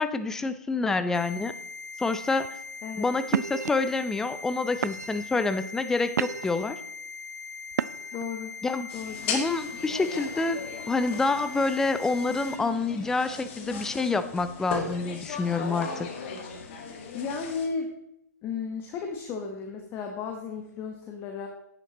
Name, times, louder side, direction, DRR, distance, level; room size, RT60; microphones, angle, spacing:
voice 1, 0.0-1.5 2.0-2.5 3.0-6.8 8.6-8.9 9.3-16.1, left 3 dB, 5° left, 12 dB, 0.4 m, -27 dB
sound 1, 1.1-12.6, left 4 dB, 75° left, 1.4 m, -41 dB
sound 2, 2.4-2.7 3.3-3.7 4.4-4.5 4.8-5.3 5.8-6.6 7.7-8.2, right 8 dB, 65° right, 0.4 m, -31 dB
voice 2, 8.1-8.6 8.9-9.3 17.1-17.9 18.4-21.5, left 5 dB, 20° left, 4 dB, 1.1 m, -34 dB
sound 3, 8.9-17.7, left 5 dB, 40° left, 1.8 m, -37 dB
10.5 x 8.8 x 4.0 m, 0.81 s
hypercardioid pair, 135°, 9 cm